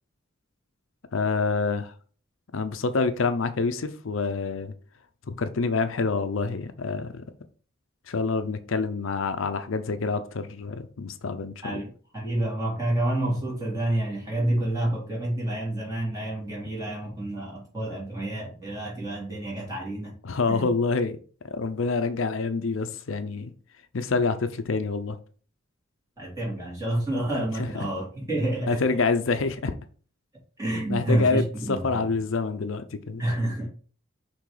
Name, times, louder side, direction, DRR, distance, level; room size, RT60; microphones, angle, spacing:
voice 1, 1.1-1.9 2.5-4.7 5.3-7.2 8.1-11.8 20.2-21.2 21.4-23.5 23.9-25.2 27.6-27.9 28.7-29.8 30.7-33.2, left 4 dB, 70° left, 0.6 m, -27 dB
voice 2, 12.1-20.1 20.5-20.7 26.2-28.8 30.6-32.1 33.2-33.7, right 1 dB, 15° right, 3.2 m, -28 dB
6.0 x 3.4 x 4.9 m
head